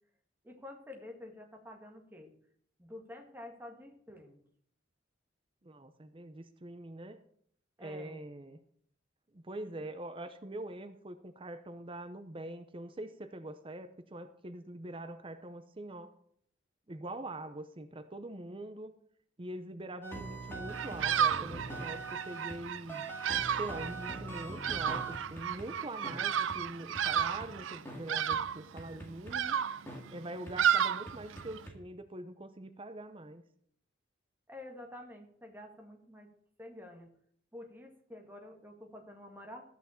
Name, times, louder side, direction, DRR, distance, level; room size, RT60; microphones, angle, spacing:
voice 1, 0.4-2.3 2.8-4.4 7.8-8.2 34.5-36.3 36.6-37.1 37.5-39.7, left 1 dB, 10° right, 2 dB, 1.8 m, -49 dB
voice 2, 5.6-7.2 7.8-8.6 9.3-16.1 16.9-18.9 19.4-23.1 23.6-29.6 30.1-33.4, right 1 dB, 30° right, 10 dB, 0.7 m, -44 dB
sound 1, 20.0-22.6 22.9-25.7 26.0-26.2 26.5-26.6 26.9-27.5 27.9-28.0 28.3-28.4 28.8-29.3 29.9-30.0 30.5-30.6 31.1-31.8, right 2 dB, 10° left, 2.0 m, -43 dB
Bird vocalization bird call bird song, 20.7-31.7, right 8 dB, 90° right, 0.5 m, -33 dB
13.5 x 6.0 x 7.1 m, 0.64 s
head